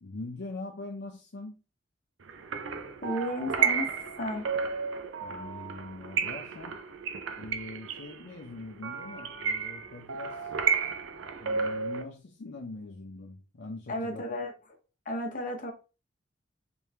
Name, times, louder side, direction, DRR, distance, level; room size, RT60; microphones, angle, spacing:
voice 1, 0.0-1.6 5.2-6.8 7.4-10.5 11.4-14.2, left 2 dB, 65° left, 0.6 m, -42 dB
sound 1, 2.3-12.0, right 6 dB, 90° right, 0.6 m, -32 dB
voice 2, 3.0-3.9 4.2-4.5 13.9-14.5 15.1-15.7, left 1 dB, 45° left, 1.0 m, -33 dB
3.5 x 3.2 x 3.2 m
head